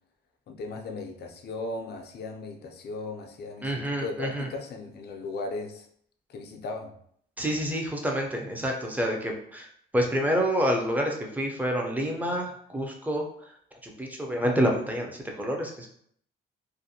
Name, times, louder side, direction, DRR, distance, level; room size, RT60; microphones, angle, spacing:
voice 1, 0.5-5.9 6.3-6.9, left 3 dB, 55° left, 3 dB, 0.5 m, -37 dB
voice 2, 3.6-4.5 7.4-13.3 13.8-15.9, equal, 10° right, 1 dB, 0.5 m, -28 dB
2.5 x 2.1 x 2.7 m, 0.66 s
cardioid pair, 90°, 20 cm